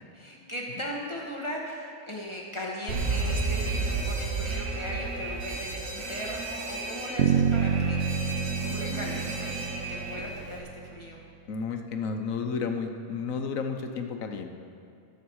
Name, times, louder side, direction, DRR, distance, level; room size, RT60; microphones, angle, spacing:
voice 1, 0.1-8.0 8.6-11.2, equal, 20° left, -4 dB, 1.6 m, -38 dB
Alarm, 2.9-10.6, right 3 dB, 75° right, 1.8 m, -32 dB
Bass guitar, 7.2-11.1, right 7 dB, 60° right, 0.9 m, -28 dB
voice 2, 8.9-9.2 11.5-14.5, left 5 dB, 90° left, 5 dB, 1.3 m, -32 dB
20.0 x 7.1 x 4.8 m, 2.4 s
omnidirectional pair, 1.4 m